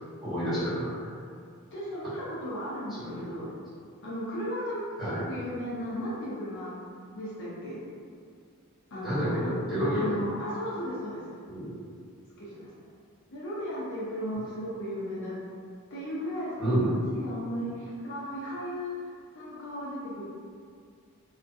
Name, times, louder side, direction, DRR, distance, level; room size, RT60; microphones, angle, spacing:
voice 1, 0.2-0.9 2.9-3.5 5.0-5.2 9.0-10.2 11.5-11.7 16.6-17.0, equal, ahead, -14 dB, 1.1 m, -29 dB
voice 2, 1.7-3.5 4.0-6.7 7.1-7.8 8.9-9.4 9.9-11.2 12.4-12.7 13.3-15.4 15.9-18.9 19.3-20.2, equal, 55° left, -7 dB, 0.5 m, -35 dB
2.4 x 2.1 x 2.5 m, 2.2 s
head